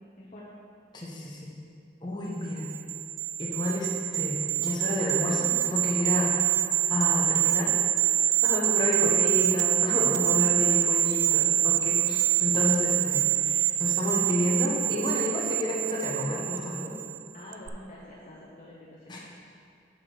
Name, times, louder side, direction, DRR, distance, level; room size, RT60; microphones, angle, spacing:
voice 1, 0.9-1.5 2.0-2.7 3.4-6.3 6.9-7.7 8.4-16.9 19.1-19.2, left 1 dB, 25° left, -4 dB, 1.2 m, -30 dB
sound 1, 2.6-17.2 17.5-17.7, right 11 dB, 80° right, 0.4 m, -26 dB
voice 2, 10.1-10.5 12.0-12.1 17.3-19.2, left 1 dB, 40° left, -6 dB, 0.8 m, -46 dB
7.1 x 6.4 x 4.0 m, 2.3 s
head